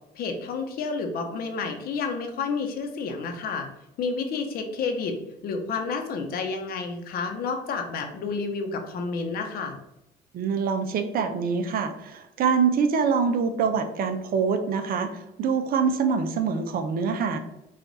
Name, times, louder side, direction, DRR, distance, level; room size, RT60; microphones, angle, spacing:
voice 1, 0.1-3.7 4.0-5.2 5.4-9.8, left 4 dB, 65° left, 5 dB, 0.9 m, -30 dB
voice 2, 10.3-17.4, right 5 dB, 60° right, 8 dB, 0.7 m, -25 dB
5.0 x 2.5 x 4.0 m, 0.88 s
cardioid pair, 110°, 17 cm